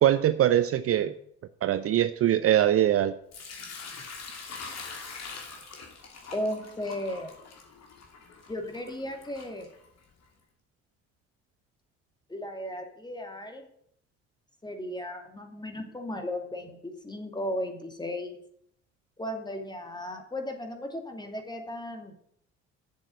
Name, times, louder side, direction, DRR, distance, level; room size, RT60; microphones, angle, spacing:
voice 1, 0.0-1.2 1.6-3.2, right 12 dB, 45° right, 12 dB, 0.6 m, -22 dB
Sink (filling or washing) / Liquid, 3.3-10.2, left 4 dB, 50° left, 2.8 m, -44 dB
voice 2, 6.3-7.3 8.5-9.7 12.3-13.6 14.6-18.4 19.2-22.1, left 1 dB, 15° left, 4 dB, 2.6 m, -35 dB
7.8 x 7.2 x 7.9 m, 0.69 s
hypercardioid pair, 55°, 33 cm